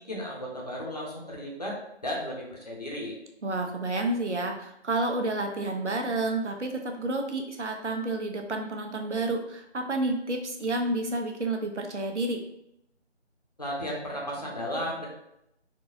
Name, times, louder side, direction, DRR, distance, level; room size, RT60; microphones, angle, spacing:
voice 1, 0.0-1.8 2.0-3.2 13.6-15.1, equal, 35° left, -3 dB, 0.7 m, -34 dB
voice 2, 3.4-12.4, right 2 dB, 85° right, 3 dB, 0.8 m, -30 dB
3.9 x 2.3 x 2.7 m, 0.80 s
figure-of-eight pair, 165°, 34 cm